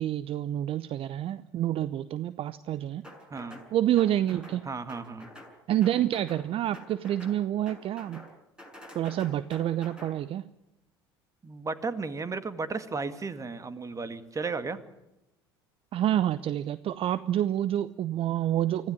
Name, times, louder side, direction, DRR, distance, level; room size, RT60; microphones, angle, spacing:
voice 1, 0.0-3.0 3.7-4.6 5.7-8.2 8.9-10.4 15.9-18.9, right 12 dB, 50° right, 16 dB, 0.8 m, -28 dB
sound 1, 3.0-3.7 4.0-4.6 4.9-5.5 5.8-6.4 6.7-7.4 7.7-8.3 8.6-10.1, left 1 dB, 5° right, 7.0 m, -48 dB
voice 2, 3.3-3.6 4.6-5.3 11.4-14.8, right 4 dB, 25° right, 12 dB, 2.1 m, -34 dB
25.0 x 15.5 x 9.7 m, 0.92 s
hypercardioid pair, 65°, 13 cm